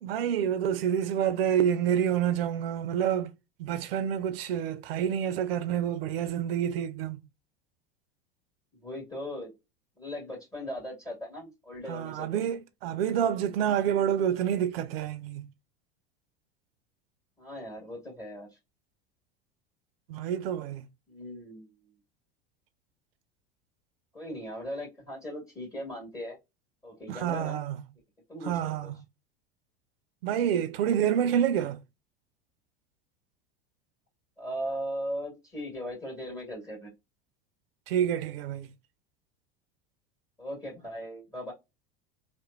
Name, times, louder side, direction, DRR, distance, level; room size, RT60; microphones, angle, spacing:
voice 1, 0.0-3.3 3.6-7.2 11.9-15.5 20.1-20.8 27.1-27.8 28.4-28.9 30.2-31.8 37.9-38.7, right 9 dB, 80° right, 0.4 m, -28 dB
voice 2, 8.8-9.5 10.0-12.4 17.4-18.6 21.1-21.7 24.1-26.4 26.8-27.6 28.3-28.9 34.4-36.9 40.4-41.5, equal, 10° left, 1.6 m, -38 dB
2.9 x 2.1 x 2.4 m
hypercardioid pair, 85°, 29 cm